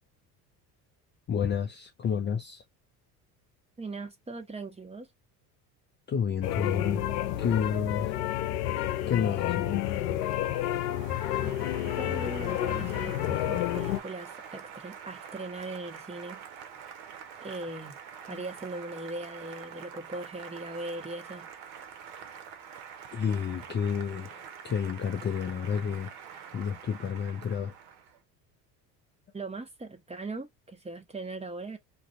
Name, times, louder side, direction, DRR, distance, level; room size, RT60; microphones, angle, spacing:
voice 1, 1.3-2.6 6.1-7.0 7.4-8.2 9.1-9.8 18.3-18.4 23.1-26.1 26.5-27.7, left 7 dB, 25° left, 0.4 m, -30 dB
voice 2, 3.8-5.1 12.0-16.4 17.4-18.0 18.2-21.5 29.3-31.8, right 2 dB, 15° right, 0.8 m, -39 dB
sound 1, 6.4-14.0, left 13 dB, 75° left, 0.6 m, -30 dB
Applause, 9.4-28.2, right 7 dB, 65° right, 0.8 m, -46 dB
2.4 x 2.2 x 2.4 m
hypercardioid pair, 65°, 49 cm